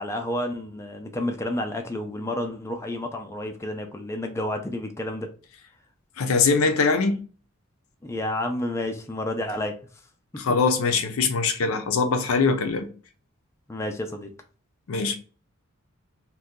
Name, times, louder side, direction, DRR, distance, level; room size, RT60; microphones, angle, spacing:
voice 1, 0.0-5.3 8.0-9.7 13.7-14.3, left 1 dB, 15° left, 0.3 m, -30 dB
voice 2, 6.2-7.2 10.4-12.9 14.9-15.2, left 4 dB, 75° left, 0.5 m, -22 dB
2.7 x 2.2 x 3.6 m
head